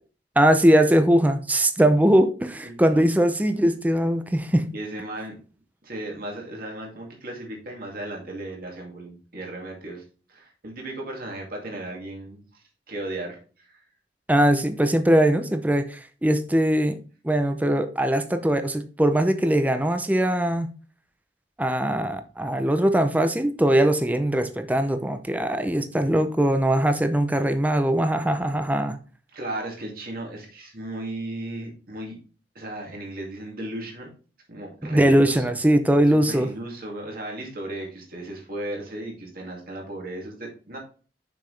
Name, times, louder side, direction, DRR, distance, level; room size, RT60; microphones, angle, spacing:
voice 1, 0.4-4.7 14.3-17.0 17.2-20.7 21.6-29.0 34.8-36.5, right 1 dB, 10° right, 0.5 m, -21 dB
voice 2, 2.6-3.0 4.7-5.3 5.8-10.0 10.3-12.6 12.9-13.8 29.3-32.2 32.5-34.1 34.5-35.5 36.1-40.8, right 1 dB, 50° right, 2.3 m, -35 dB
6.7 x 5.9 x 3.3 m
head